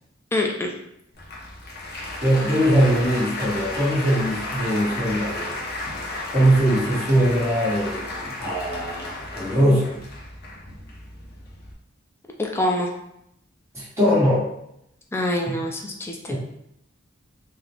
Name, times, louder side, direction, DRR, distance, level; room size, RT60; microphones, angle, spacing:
voice 1, 0.3-0.7 12.5-12.9 15.1-16.2, left 1 dB, 10° left, 1 dB, 0.3 m, -24 dB
Applause, 1.1-11.7, left 2 dB, 50° left, 0.7 m, -33 dB
voice 2, 2.2-5.6 6.3-10.0 13.7-14.5 15.5-15.6 16.3-16.4, equal, 15° right, -9 dB, 1.3 m, -21 dB
4.0 x 2.1 x 2.8 m, 0.79 s
head